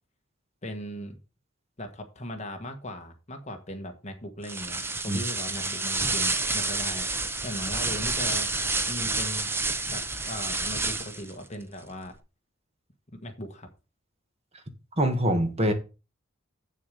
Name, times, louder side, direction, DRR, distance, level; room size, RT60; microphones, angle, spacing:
voice 1, 0.6-1.2 1.8-7.1 7.4-9.5 9.9-12.1 13.2-13.7, left 1 dB, 35° left, 1.4 m, -38 dB
sound 1, 4.4-11.3, right 3 dB, 10° right, 0.7 m, -29 dB
voice 2, 15.0-15.7, equal, 30° right, 1.6 m, -24 dB
8.1 x 6.6 x 5.2 m
head